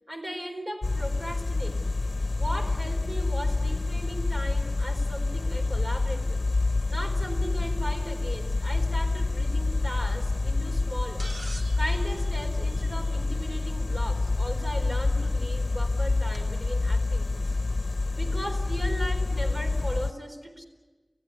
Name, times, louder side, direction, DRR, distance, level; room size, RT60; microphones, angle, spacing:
voice 1, 0.1-1.9 2.4-6.4 6.9-11.3 11.8-17.4 18.1-20.6, equal, 35° right, 3 dB, 4.4 m, -37 dB
sound 1, 0.8-20.1, left 3 dB, 80° left, 0.7 m, -27 dB
sound 2, 11.2-13.5 15.1-15.2 16.3-16.4, right 2 dB, 70° right, 1.5 m, -45 dB
29.5 x 15.5 x 9.7 m, 1.3 s
wide cardioid pair, 50°, 0 cm